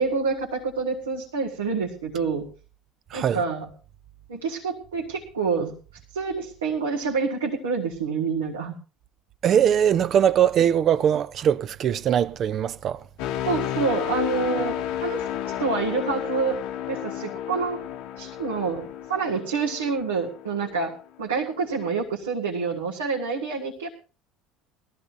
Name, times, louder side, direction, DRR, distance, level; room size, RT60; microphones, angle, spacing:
voice 1, 0.0-2.5 3.1-3.7 4.3-5.8 6.1-8.7 13.4-16.6 16.9-17.8 18.2-20.9 21.2-23.9, right 4 dB, 75° right, 1.6 m, -27 dB
voice 2, 9.4-13.0, right 9 dB, 40° right, 0.6 m, -21 dB
sound 1, 13.2-21.0 21.5-21.7, left 11 dB, 60° left, 1.0 m, -32 dB
21.0 x 14.0 x 2.7 m
figure-of-eight pair, 65°, 0 cm